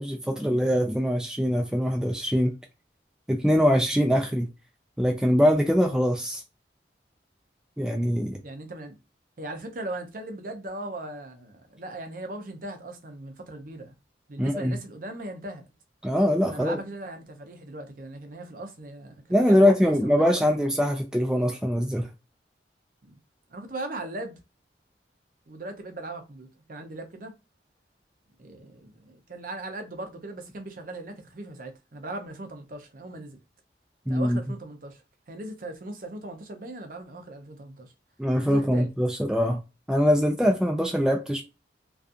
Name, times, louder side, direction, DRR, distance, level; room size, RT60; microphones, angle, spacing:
voice 1, 0.0-2.5 3.3-4.5 5.0-6.4 7.8-8.4 14.4-14.8 16.0-16.8 19.3-22.1 34.1-34.4 38.2-39.6 39.9-41.4, equal, 5° right, 0.3 m, -23 dB
voice 2, 8.4-9.0 9.4-13.9 14.3-15.6 16.5-20.5 23.0-23.2 23.5-24.4 25.5-27.3 28.4-33.4 34.1-35.0 35.3-37.9 38.4-38.9 40.4-40.5, right 2 dB, 50° right, 0.5 m, -39 dB
2.4 x 2.4 x 2.5 m
head